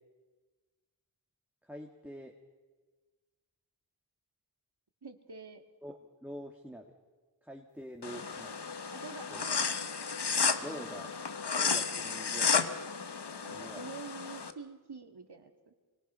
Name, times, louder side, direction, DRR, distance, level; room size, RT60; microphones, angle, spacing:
voice 1, 1.6-2.4 5.8-6.9 7.4-8.5 9.3-9.4 10.6-11.1 11.6-12.8 13.5-13.9, equal, 5° right, 2 dB, 1.9 m, -45 dB
voice 2, 5.0-5.6 8.9-9.8 10.5-11.2 13.4-15.7, right 5 dB, 70° right, 5 dB, 2.1 m, -47 dB
sound 1, 8.0-14.5, left 5 dB, 75° left, 1.1 m, -33 dB
25.0 x 22.5 x 5.6 m, 1.3 s
wide cardioid pair, 40°, 41 cm